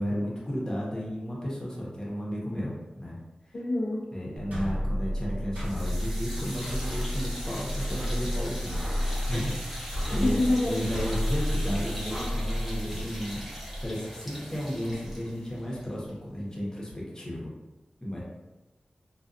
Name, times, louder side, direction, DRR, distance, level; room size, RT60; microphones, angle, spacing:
voice 1, 0.0-3.2 4.1-8.7 9.0-10.4 10.7-13.5 13.8-17.5 18.0-18.2, equal, 25° left, -5 dB, 0.8 m, -33 dB
voice 2, 3.5-4.1 10.1-10.8, left 2 dB, 55° left, -4 dB, 0.4 m, -26 dB
sound 1, 4.4-13.9, equal, 80° right, 1.0 m, -31 dB
sound 2, 5.6-16.6, equal, 5° right, 0.7 m, -41 dB
2.5 x 2.2 x 2.4 m, 1.1 s
wide cardioid pair, 65°, 3 cm